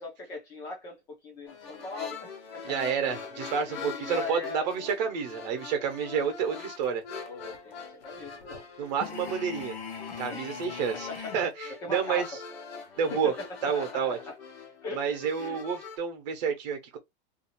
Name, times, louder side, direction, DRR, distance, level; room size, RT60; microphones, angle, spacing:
voice 1, 0.0-3.1 3.7-4.7 7.2-8.6 10.3-10.6 10.9-11.5 11.8-12.3 13.1-14.4 14.8-15.0 15.4-15.6, left 3 dB, 10° left, 0.6 m, -40 dB
sound 1, 1.5-16.0, left 5 dB, 60° left, 1.1 m, -43 dB
voice 2, 2.6-7.0 8.8-9.8 10.2-11.1 11.3-12.3 13.0-13.3 13.6-14.2 14.9-17.0, right 6 dB, 40° right, 1.0 m, -29 dB
sound 2, 9.0-11.5, left 6 dB, 35° left, 0.9 m, -40 dB
2.8 x 2.4 x 2.6 m
supercardioid pair, 180°, 33 cm